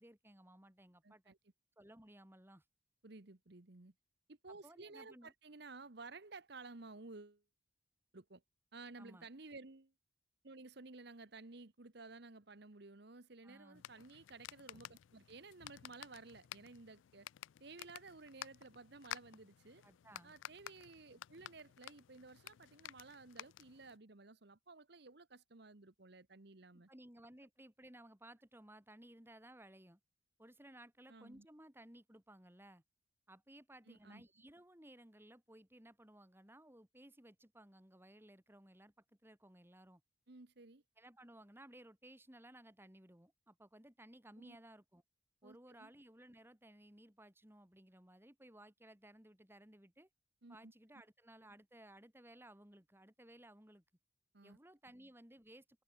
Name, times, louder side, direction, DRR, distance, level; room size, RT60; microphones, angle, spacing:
voice 1, 0.0-1.3 1.8-2.6 4.5-5.3 9.0-9.3 13.4-13.8 19.8-20.4 26.7-30.0 30.4-32.8 33.3-40.0 41.0-45.0 45.4-50.1 50.5-53.8 54.4-55.8, right 1 dB, 10° right, 2.7 m, -59 dB
voice 2, 1.0-1.4 3.0-3.9 4.3-7.4 8.1-8.4 8.7-9.9 10.4-17.3 17.6-19.8 20.2-26.9 31.1-31.4 33.9-34.2 40.3-40.8 44.4-44.6 45.4-45.9 50.4-50.7 54.3-54.6, right 3 dB, 55° right, 1.2 m, -55 dB
sound 1, 13.7-24.0, left 12 dB, 80° left, 0.3 m, -53 dB
head